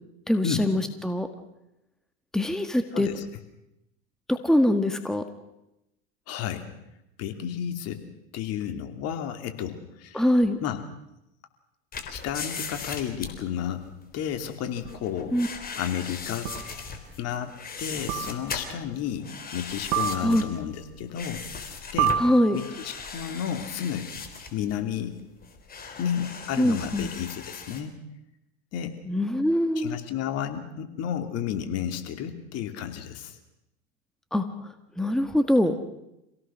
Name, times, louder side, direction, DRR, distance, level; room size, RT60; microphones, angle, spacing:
voice 1, 0.3-1.3 2.3-3.1 4.3-5.2 10.1-10.6 15.3-15.5 20.2-20.4 22.2-22.6 26.6-27.1 29.1-30.0 34.3-34.5 35.0-35.7, left 1 dB, ahead, 8 dB, 1.7 m, -23 dB
voice 2, 2.9-3.2 6.3-6.7 7.2-8.0 8.3-10.2 10.6-10.8 12.1-13.8 14.1-15.4 15.8-16.5 17.2-22.2 22.5-24.1 24.5-25.2 26.0-28.0 28.7-29.0 29.8-33.4, left 9 dB, 50° left, 7 dB, 2.8 m, -32 dB
sound 1, 11.9-27.8, left 5 dB, 25° left, 3.6 m, -39 dB
sound 2, 14.9-15.0 16.5-16.8 18.1-18.7 19.9-20.7 22.0-22.9, right 8 dB, 55° right, 4.1 m, -29 dB
27.0 x 17.5 x 6.3 m, 0.87 s
hypercardioid pair, 95°, 33 cm